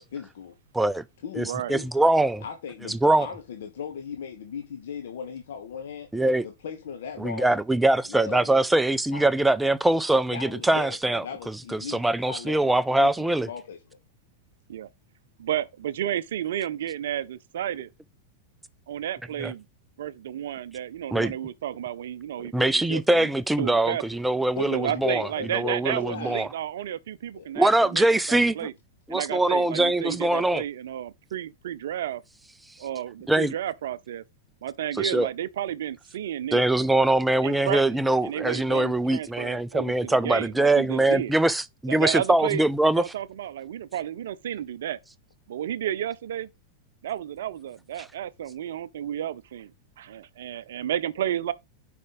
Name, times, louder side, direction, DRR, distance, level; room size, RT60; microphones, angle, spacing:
voice 1, 0.0-0.5 1.2-1.9 2.4-6.1 6.4-7.6 8.1-8.5 9.1-9.2 10.3-13.8 24.6-26.4 27.3-27.5, left 7 dB, 60° left, 1.0 m, -37 dB
voice 2, 0.7-1.0 1.4-2.4 2.9-3.3 6.1-6.4 7.2-13.5 19.4-19.5 21.1-21.3 22.5-26.5 27.6-28.7 29.1-30.6 33.3-33.5 35.0-35.3 36.5-43.0, right 2 dB, 5° right, 0.5 m, -23 dB
voice 3, 15.4-17.9 18.9-19.6 20.0-23.3 23.6-24.0 24.7-28.7 29.1-32.2 32.8-34.2 34.6-36.6 37.4-41.3 41.9-42.6 43.0-45.0 45.5-46.5 47.0-51.5, right 11 dB, 60° right, 0.5 m, -32 dB
5.2 x 5.0 x 5.1 m
figure-of-eight pair, 90°, 0 cm